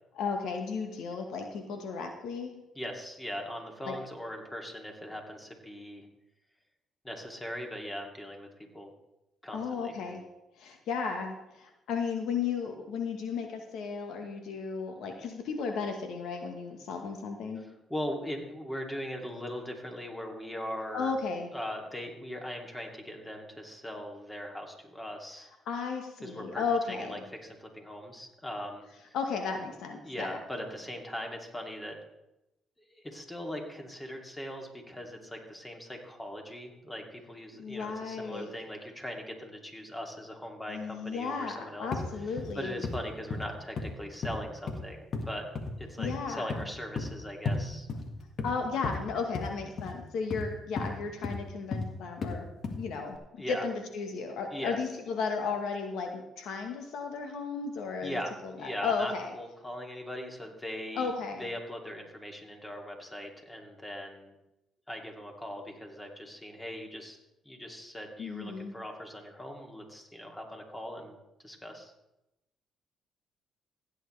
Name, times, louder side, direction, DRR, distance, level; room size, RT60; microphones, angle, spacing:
voice 1, 0.1-2.6 3.9-4.0 9.5-10.2 10.6-17.6 20.9-21.5 25.6-27.2 29.1-30.4 37.6-38.5 40.7-42.8 46.0-46.6 48.4-52.5 52.8-53.2 53.5-59.3 60.9-61.4 68.2-68.7, left 5 dB, 75° left, 4 dB, 1.3 m, -34 dB
voice 2, 2.7-6.1 7.0-8.5 8.7-8.9 9.4-10.0 17.6-21.1 21.5-25.5 26.2-28.9 30.0-32.0 32.9-41.9 42.6-45.5 45.8-47.9 53.4-53.7 54.5-54.8 58.0-61.1 61.4-64.3 64.9-67.2 67.4-71.2 71.4-71.9, equal, 15° left, 2 dB, 2.6 m, -40 dB
sound 1, 41.9-42.1 42.4-42.6 42.8-43.0 43.3-43.5 43.8-43.9 44.2-44.8 45.1-45.3 45.6-45.8 46.0-46.2 46.5-46.6 47.0-47.1 47.5-47.6 47.9-48.5 48.8-49.0 49.4-49.5 49.8-49.9 50.3-50.5 50.8-50.9 51.2-51.4 51.7-51.9 52.2-52.3 52.6-52.9 53.2-53.3, left 3 dB, 55° left, 1.7 m, -33 dB
16.0 x 9.2 x 3.3 m, 0.92 s
supercardioid pair, 65°, 0 cm